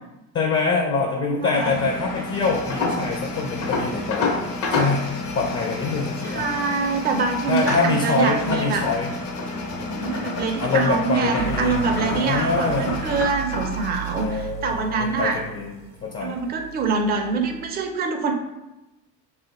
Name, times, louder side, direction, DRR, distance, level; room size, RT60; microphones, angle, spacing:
voice 1, 0.3-5.0 5.3-6.4 7.5-9.1 9.8-12.9 14.2-16.4, left 3 dB, 30° left, 0 dB, 0.5 m, -25 dB
voice 2, 1.4-1.9 6.2-8.9 10.0-15.4 16.2-18.3, right 4 dB, 20° right, 4 dB, 0.4 m, -25 dB
Engine, 1.5-13.2, left 2 dB, 90° left, 0.6 m, -33 dB
sound 1, 2.3-14.3, left 3 dB, 65° left, 0.9 m, -31 dB
sound 2, 11.4-17.7, right 13 dB, 65° right, 0.8 m, -36 dB
2.5 x 2.4 x 4.0 m, 0.98 s
supercardioid pair, 75°, 48 cm